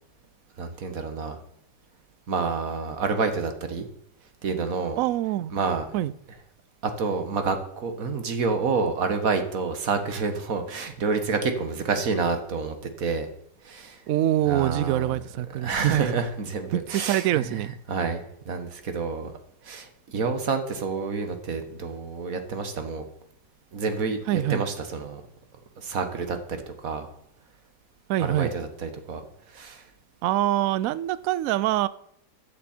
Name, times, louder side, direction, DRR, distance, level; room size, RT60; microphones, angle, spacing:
voice 1, 0.6-1.4 2.3-3.9 4.4-5.0 5.5-5.8 6.8-13.3 13.6-14.0 14.5-15.1 15.6-17.6 17.9-19.3 19.6-23.0 23.7-25.2 25.8-26.6 26.8-27.1 28.2-29.2 29.5-29.8, right 4 dB, 50° right, 7 dB, 1.7 m, -28 dB
voice 2, 5.0-5.5 5.9-6.1 14.1-16.2 16.7-17.7 24.3-24.6 28.1-28.6 30.2-31.9, right 13 dB, 75° right, 18 dB, 0.7 m, -25 dB
14.0 x 8.5 x 4.4 m, 0.75 s
omnidirectional pair, 2.0 m